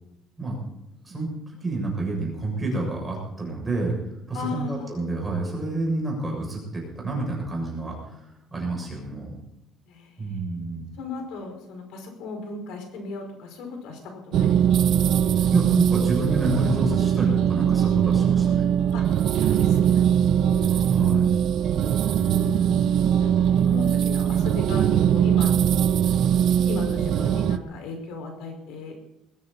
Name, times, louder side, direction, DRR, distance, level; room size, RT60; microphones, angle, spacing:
voice 1, 1.0-3.9 4.3-9.3 10.2-10.8 15.5-18.7 20.8-21.4 22.2-22.9, right 2 dB, 10° right, -2 dB, 7.1 m, -29 dB
voice 2, 4.3-5.0 9.9-14.9 18.9-20.1 20.4-20.9 21.8-22.4 23.2-23.3 23.6-25.6 26.7-29.1, left 3 dB, 80° left, 4 dB, 5.4 m, -36 dB
sound 1, 14.3-27.6, right 9 dB, 50° right, 0.7 m, -21 dB
20.5 x 15.0 x 4.3 m, 0.86 s
cardioid pair, 180°, 0 cm